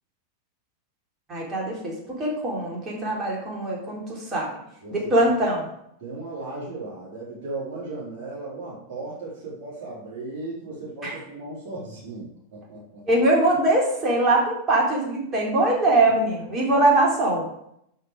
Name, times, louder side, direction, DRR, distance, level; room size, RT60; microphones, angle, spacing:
voice 1, 1.3-4.5 4.9-5.6 11.0-11.1 13.1-17.5, right 2 dB, 25° right, -3 dB, 3.9 m, -22 dB
voice 2, 4.8-5.1 6.0-13.0 15.7-15.8, right 2 dB, 40° right, -9 dB, 4.0 m, -36 dB
11.0 x 6.4 x 5.0 m, 0.75 s
figure-of-eight pair, 90°, 0 cm